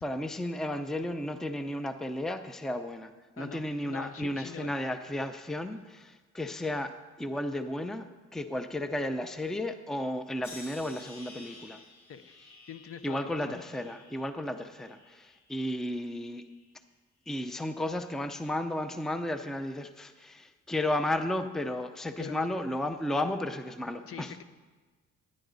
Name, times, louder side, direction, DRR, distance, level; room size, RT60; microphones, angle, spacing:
voice 1, 0.0-6.9 7.2-11.8 13.0-16.4 17.3-24.3, left 1 dB, ahead, 9 dB, 0.6 m, -33 dB
voice 2, 3.4-4.7 12.1-12.4 12.7-13.6 22.2-22.5 24.1-24.4, left 7 dB, 50° left, 11 dB, 0.8 m, -43 dB
sound 1, 10.4-15.6 16.0-16.7 17.4-17.7, left 3 dB, 70° left, 2.8 m, -53 dB
15.0 x 9.9 x 4.0 m, 1.3 s
cardioid pair, 90°, 30 cm